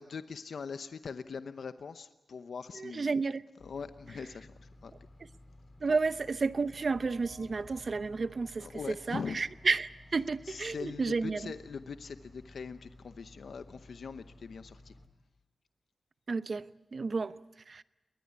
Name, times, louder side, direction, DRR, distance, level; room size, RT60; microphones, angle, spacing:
voice 1, 0.0-3.1 3.6-4.9 8.6-9.4 10.4-14.9, left 5 dB, 75° left, 0.8 m, -42 dB
voice 2, 2.8-3.4 5.8-8.7 9.1-11.5 16.3-17.3 17.7-17.8, right 4 dB, 50° right, 0.7 m, -31 dB
sound 1, 3.6-15.1, left 1 dB, 45° left, 2.5 m, -55 dB
sound 2, 6.9-12.2, right 1 dB, 75° right, 6.9 m, -58 dB
21.0 x 20.0 x 9.6 m
wide cardioid pair, 100°, 0 cm